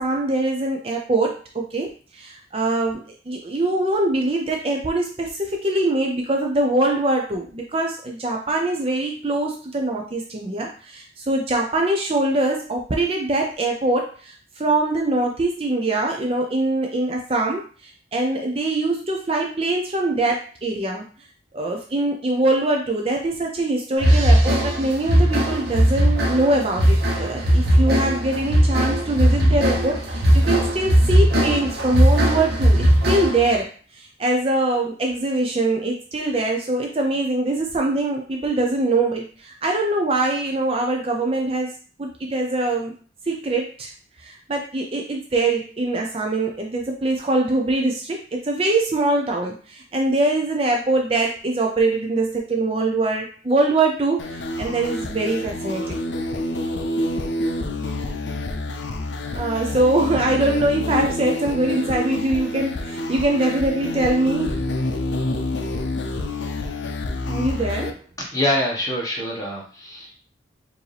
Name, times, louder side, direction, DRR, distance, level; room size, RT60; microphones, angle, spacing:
voice 1, 0.0-21.0 21.5-33.7 33.9-43.0 43.3-43.9 44.2-56.0 59.3-64.7 67.3-67.9, right 2 dB, 30° right, 1 dB, 0.5 m, -23 dB
sound 1, 24.0-33.5, equal, 55° right, 1.0 m, -18 dB
sound 2, 54.2-67.9, left 2 dB, 75° left, 0.5 m, -27 dB
voice 2, 68.2-70.1, left 1 dB, 20° left, -2 dB, 1.1 m, -25 dB
4.7 x 2.7 x 3.3 m, 0.40 s
head